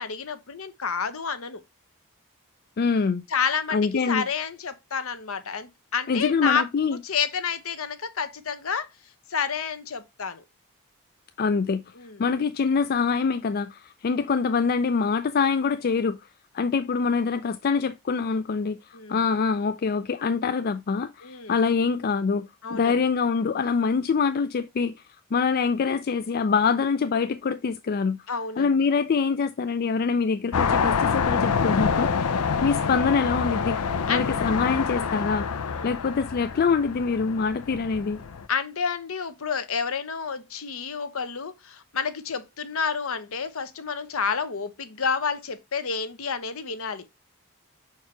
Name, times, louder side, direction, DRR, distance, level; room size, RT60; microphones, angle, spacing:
voice 1, 0.0-1.6 3.3-3.8 4.1-8.9 9.3-10.4 12.0-12.2 18.9-19.2 21.2-21.5 22.6-23.0 28.3-28.8 34.1-34.3 35.7-36.0 38.5-47.1, left 6 dB, 65° left, 0.9 m, -29 dB
voice 2, 2.8-3.2 3.7-4.3 6.1-7.0 11.4-11.8 12.2-16.2 16.5-22.4 22.7-24.9 25.3-28.2 28.6-32.1 32.6-33.8 34.1-35.5 35.8-38.2, left 5 dB, 45° left, 0.4 m, -24 dB
sound 1, 30.5-38.5, left 6 dB, 85° left, 0.6 m, -26 dB
5.9 x 4.6 x 4.5 m
head